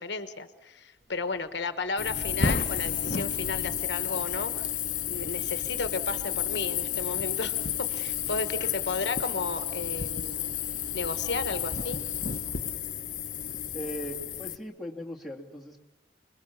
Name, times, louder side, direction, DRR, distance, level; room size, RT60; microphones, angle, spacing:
voice 1, 0.0-4.7 5.0-10.5 10.9-12.0, left 3 dB, 65° left, 10 dB, 1.2 m, -34 dB
sound 1, 1.0-12.8, equal, 15° right, 2.1 m, -54 dB
sound 2, 2.0-14.6, left 8 dB, 45° left, 1.0 m, -31 dB
voice 2, 13.7-15.8, equal, ahead, -3 dB, 2.4 m, -39 dB
29.5 x 21.5 x 7.2 m, 0.96 s
head